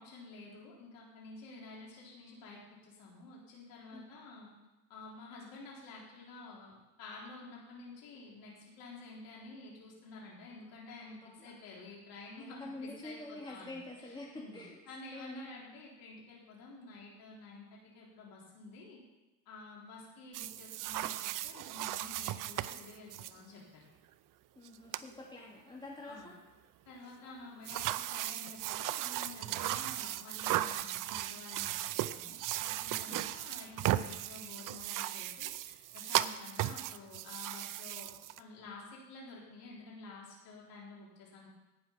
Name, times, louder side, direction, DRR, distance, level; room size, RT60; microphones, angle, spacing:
voice 1, 0.0-4.5 4.9-14.6 14.9-19.0 19.5-23.8 26.0-26.3 26.9-38.1 38.4-41.5, left 3 dB, 80° left, -4 dB, 3.7 m, -50 dB
voice 2, 11.0-11.6 12.4-14.8 15.1-15.5 24.6-26.4 33.1-33.3, left 2 dB, 15° left, -3 dB, 2.5 m, -47 dB
sound 1, 20.3-23.3 24.6-24.7 24.9-25.1 27.6-38.4, right 14 dB, 70° right, 0.6 m, -36 dB
17.5 x 6.2 x 5.8 m, 1.1 s
cardioid pair, 120°, 34 cm